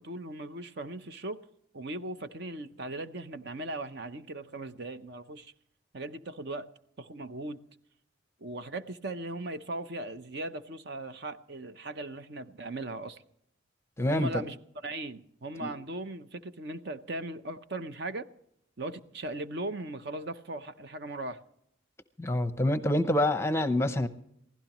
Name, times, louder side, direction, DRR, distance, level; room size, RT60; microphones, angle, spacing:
voice 1, 0.0-1.4 1.7-5.5 5.9-6.7 7.0-7.6 8.4-13.2 14.1-14.6 14.8-18.3 18.8-21.4, right 2 dB, 55° right, 0.8 m, -38 dB
voice 2, 14.0-14.4 15.6-15.7 22.2-24.1, left 1 dB, 15° left, 0.7 m, -27 dB
23.5 x 16.0 x 3.0 m
head